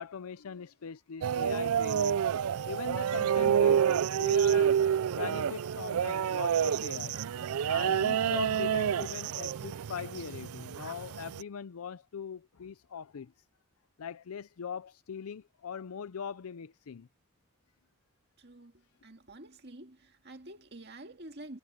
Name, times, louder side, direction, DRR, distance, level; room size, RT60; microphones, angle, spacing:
voice 1, 0.0-2.2 2.7-7.2 7.7-13.3 14.0-17.1, left 7 dB, 80° left, 0.5 m, -41 dB
sound 1, 1.2-11.4, right 8 dB, 85° right, 0.4 m, -28 dB
Bowed string instrument, 2.0-8.7, left 6 dB, 40° left, 5.6 m, -66 dB
voice 2, 18.4-18.7 19.0-21.6, right 1 dB, 45° right, 2.2 m, -48 dB
head